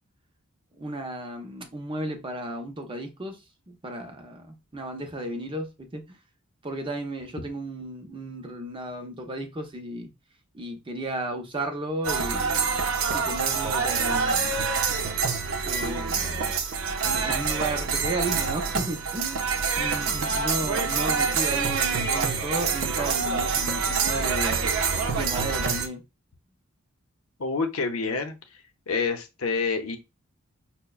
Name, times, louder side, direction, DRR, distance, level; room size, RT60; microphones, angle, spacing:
voice 1, 0.8-3.4 3.7-6.2 6.6-10.1 10.5-12.8 13.1-14.6 15.6-16.6 17.0-24.7 25.1-26.0, right 1 dB, 25° right, 0.6 m, -34 dB
sound 1, 12.0-25.9, right 5 dB, 70° right, 0.6 m, -26 dB
voice 2, 27.4-28.3 28.9-30.0, left 4 dB, 75° left, 0.6 m, -27 dB
5.5 x 2.1 x 2.3 m
head